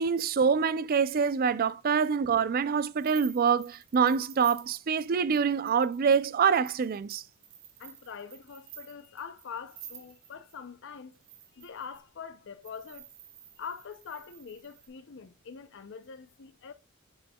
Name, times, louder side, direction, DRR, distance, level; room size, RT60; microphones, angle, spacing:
voice 1, 0.0-7.2, right 6 dB, 45° right, 0.4 m, -25 dB
sound 1, 3.0-10.6 11.1-12.0 12.6-14.9, right 9 dB, 75° right, 1.3 m, -51 dB
voice 2, 7.8-11.1 11.6-13.1 13.6-16.7, left 6 dB, 60° left, 0.5 m, -44 dB
7.8 x 6.0 x 2.2 m
head